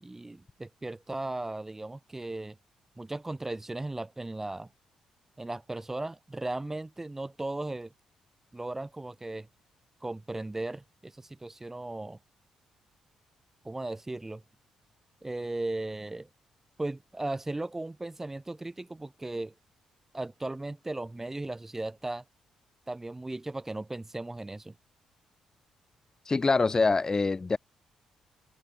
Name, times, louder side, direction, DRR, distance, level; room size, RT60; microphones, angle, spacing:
voice 1, 0.0-2.6 3.0-4.7 5.4-7.9 8.5-9.5 10.0-12.2 13.6-14.4 15.2-16.3 16.8-19.5 20.1-22.2 22.9-24.7, right 2 dB, 15° right, 0.5 m, -36 dB
voice 2, 26.3-27.6, left 3 dB, 30° left, 0.8 m, -24 dB
open air
hypercardioid pair, 45°, 2 cm